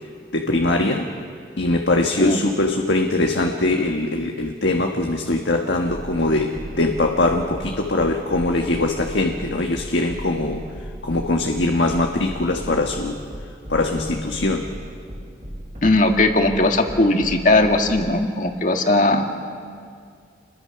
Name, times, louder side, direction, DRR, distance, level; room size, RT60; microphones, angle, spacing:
voice 1, 0.3-1.1 1.6-13.2 13.7-14.7, left 2 dB, 80° left, 2 dB, 1.5 m, -22 dB
sound 1, 5.9-18.1, equal, 40° right, 5.2 m, -36 dB
voice 2, 15.8-19.2, left 2 dB, 45° left, 4 dB, 1.9 m, -18 dB
29.5 x 22.0 x 5.9 m, 2.2 s
head